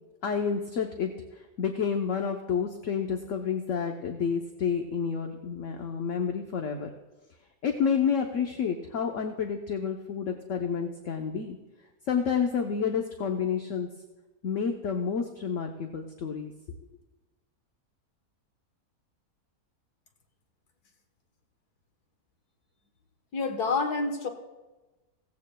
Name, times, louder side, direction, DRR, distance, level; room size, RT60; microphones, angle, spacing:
voice 1, 0.2-6.9 7.6-11.6 12.1-13.9 14.4-16.5, left 6 dB, 60° left, 3 dB, 1.1 m, -29 dB
voice 2, 23.3-24.3, left 4 dB, 85° left, 5 dB, 1.7 m, -28 dB
16.5 x 15.5 x 2.2 m, 1.1 s
omnidirectional pair, 1.6 m